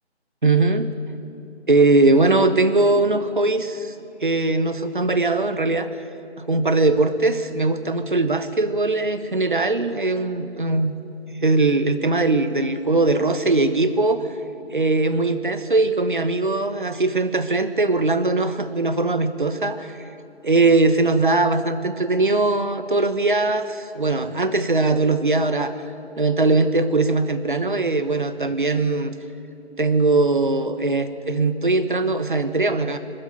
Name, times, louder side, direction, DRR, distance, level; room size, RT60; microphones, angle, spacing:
voice 1, 0.4-0.9 1.7-3.9 4.2-5.9 6.5-10.9 11.4-14.3 14.7-20.0 20.4-25.8 26.2-29.2 29.8-33.0, right 2 dB, 45° right, 11 dB, 1.2 m, -20 dB
21.5 x 13.0 x 9.2 m, 2.8 s
figure-of-eight pair, 160°, 34 cm